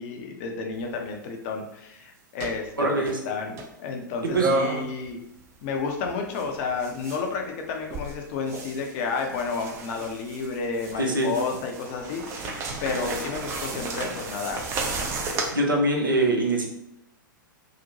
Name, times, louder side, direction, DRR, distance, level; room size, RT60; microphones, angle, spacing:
voice 1, 0.0-5.2 5.6-14.7, left 4 dB, 40° left, 3 dB, 0.5 m, -31 dB
sound 1, 0.7-0.9 2.4-2.7 3.1-3.2 3.6-3.7 4.3-5.1 5.4-7.3 7.8-15.5, right 3 dB, 25° right, 0.4 m, -32 dB
voice 2, 2.8-3.2 4.2-4.5 11.0-11.3 15.5-16.7, right 2 dB, 80° right, 1 dB, 0.6 m, -23 dB
2.8 x 2.1 x 2.7 m, 0.81 s
figure-of-eight pair, 100°, 11 cm